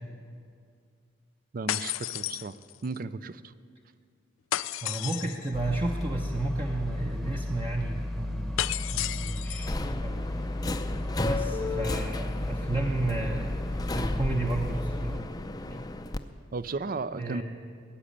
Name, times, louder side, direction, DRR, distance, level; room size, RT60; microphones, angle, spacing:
voice 1, 1.5-2.5 2.8-3.4 16.5-17.4, right 3 dB, 45° right, 16 dB, 0.4 m, -34 dB
sound 1, 1.7-3.0 4.5-5.5 8.6-9.8, left 13 dB, 90° left, 0.4 m, -32 dB
voice 2, 4.8-8.6 8.9-10.3 11.2-13.6 13.9-15.2 15.7-15.9 17.1-17.4, right 2 dB, 25° right, 0 dB, 0.8 m, -32 dB
sound 2, 5.5-15.2, left 1 dB, ahead, 1.0 m, -34 dB
Subway metro underground, 9.6-16.2, left 2 dB, 20° left, 0.5 m, -34 dB
18.5 x 7.3 x 9.9 m, 2.3 s
head